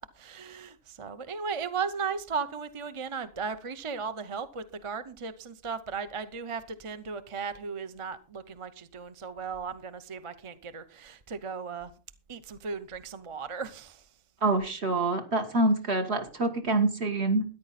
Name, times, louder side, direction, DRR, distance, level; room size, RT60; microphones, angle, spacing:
voice 1, 0.2-11.9 12.3-14.1, right 5 dB, 30° right, 11 dB, 0.6 m, -36 dB
voice 2, 14.4-17.4, right 2 dB, 50° right, 5 dB, 2.0 m, -26 dB
13.5 x 10.0 x 4.1 m, 0.36 s
omnidirectional pair, 1.4 m